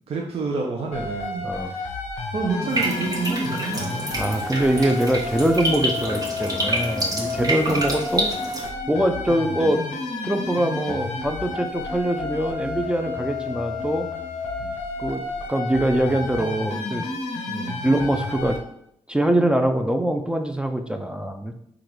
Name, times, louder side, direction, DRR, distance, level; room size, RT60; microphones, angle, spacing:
voice 1, 0.1-1.9 2.3-4.1 7.7-7.8 14.6-14.7 17.5-17.8, right 4 dB, 55° right, -1 dB, 0.5 m, -29 dB
sound 1, 0.9-18.6, left 3 dB, 80° left, 0.6 m, -31 dB
voice 2, 1.4-1.8 4.1-8.3 8.9-9.8 10.2-14.1 15.0-15.2 15.5-17.0 17.8-18.6 19.1-21.5, right 1 dB, 10° right, 5 dB, 0.3 m, -23 dB
sound 2, 2.6-15.1 15.4-15.5, right 1 dB, 80° right, 1.1 m, -42 dB
sound 3, 2.7-8.7, right 1 dB, 30° right, 0.9 m, -28 dB
3.7 x 2.4 x 3.0 m, 0.73 s
cardioid pair, 60°, 12 cm